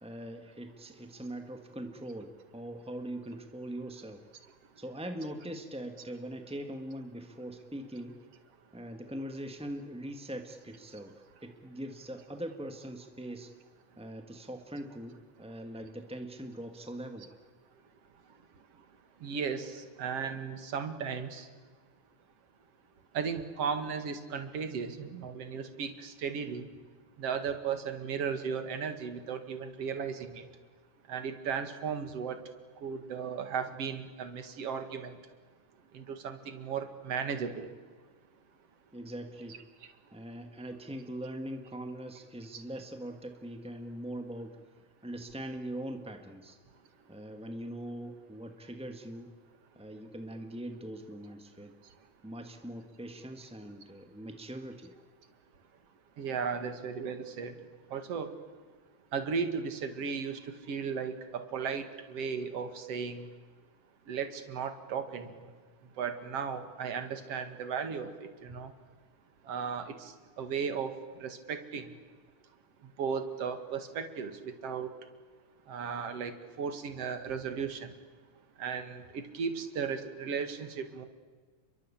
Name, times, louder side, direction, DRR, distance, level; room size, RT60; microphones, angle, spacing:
voice 1, 0.0-4.2 4.8-8.1 8.7-11.1 11.4-13.5 14.0-17.3 38.9-39.6 40.1-44.6 45.0-46.6 47.1-49.3 49.7-51.7 52.2-54.9, right 1 dB, 5° right, 5 dB, 0.6 m, -41 dB
voice 2, 19.2-21.5 23.1-26.7 27.2-30.4 31.1-32.4 32.8-35.2 35.9-37.7 42.5-42.6 56.2-57.6 57.9-58.3 59.1-63.3 64.1-65.5 66.0-68.7 69.5-70.9 71.2-71.9 73.0-74.9 75.7-77.9 78.6-81.1, right 6 dB, 55° right, 8 dB, 2.9 m, -36 dB
30.0 x 22.5 x 8.6 m, 1.5 s
omnidirectional pair, 3.5 m